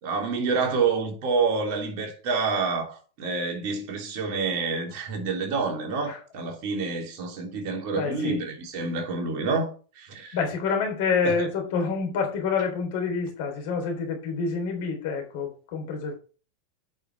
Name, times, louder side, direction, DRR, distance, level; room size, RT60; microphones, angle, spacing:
voice 1, 0.0-9.7 10.0-10.4 11.2-11.5, right 4 dB, 55° right, 3.2 m, -28 dB
voice 2, 7.9-8.4 10.3-16.1, left 5 dB, 60° left, 3.6 m, -27 dB
8.9 x 5.9 x 4.7 m
hypercardioid pair, 90°, 0 cm